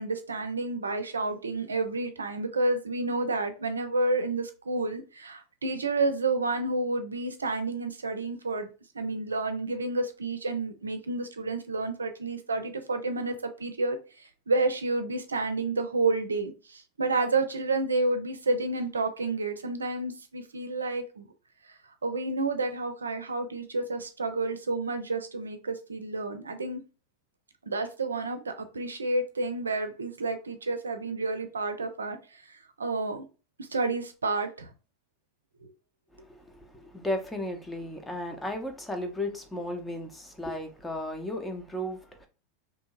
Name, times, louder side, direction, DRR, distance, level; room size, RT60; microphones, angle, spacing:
voice 1, 0.0-8.7 8.9-21.3 21.6-21.7 22.0-26.8 27.6-33.2 33.6-34.7 35.6-35.7, right 3 dB, 85° right, 0.5 m, -30 dB
voice 2, 36.2-42.3, left 1 dB, 10° left, 0.7 m, -35 dB
2.8 x 2.7 x 2.3 m
figure-of-eight pair, 90°, 0 cm